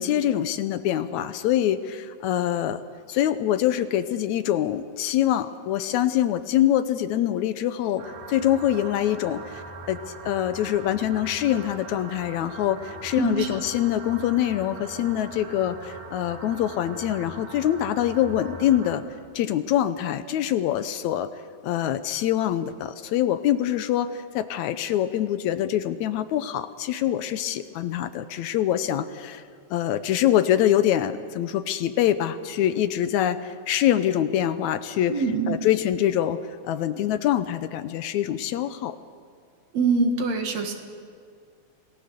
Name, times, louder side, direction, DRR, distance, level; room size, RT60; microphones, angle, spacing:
voice 1, 0.0-2.8 3.1-19.0 19.4-21.3 21.6-29.4 29.7-35.1 35.5-36.4 36.6-39.0, left 11 dB, 75° left, 12 dB, 2.0 m, -24 dB
sound 1, 8.0-19.0, right 3 dB, 85° right, 3.8 m, -41 dB
voice 2, 13.1-13.5 35.1-35.6 39.7-40.7, right 4 dB, 65° right, 4 dB, 2.7 m, -24 dB
26.5 x 18.0 x 6.8 m, 2.1 s
omnidirectional pair, 3.5 m